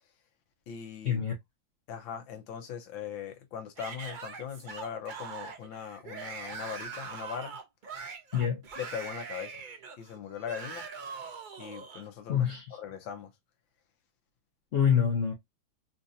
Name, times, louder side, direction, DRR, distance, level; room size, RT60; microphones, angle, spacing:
voice 1, 0.7-1.2 1.9-7.6 8.7-9.6 10.0-10.9 11.6-13.3, left 8 dB, 90° left, 1.7 m, -40 dB
Yell / Screaming, 3.8-12.1, right 5 dB, 90° right, 0.4 m, -42 dB
voice 2, 12.3-12.8 14.7-15.3, left 8 dB, 55° left, 1.0 m, -26 dB
4.3 x 2.7 x 2.5 m
omnidirectional pair, 2.1 m